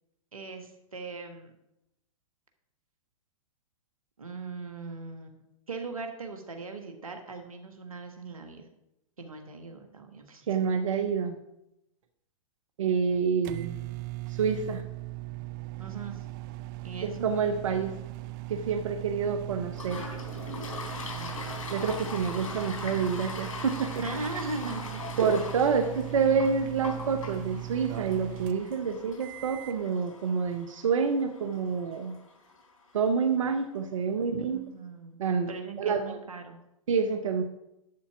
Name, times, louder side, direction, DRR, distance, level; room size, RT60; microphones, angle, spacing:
voice 1, 0.3-1.5 4.2-5.4 5.7-8.7 9.2-10.4 15.8-16.2 16.8-17.2 21.1-21.6 24.0-25.0 34.5-35.2 35.5-36.6, right 3 dB, 85° right, 4 dB, 1.5 m, -39 dB
voice 2, 10.5-11.4 12.8-13.8 14.3-14.8 17.0-17.9 18.5-20.0 21.7-23.9 25.2-32.1 32.9-34.6 35.2-35.5 35.8-36.1 36.9-37.4, right 6 dB, 65° right, 6 dB, 0.9 m, -28 dB
sound 1, 12.9-29.8, right 18 dB, 40° right, 0.5 m, -39 dB
Toilet flush, 19.7-33.1, left 4 dB, 70° left, 4.0 m, -41 dB
11.5 x 4.2 x 7.1 m, 0.86 s
hypercardioid pair, 110°, 17 cm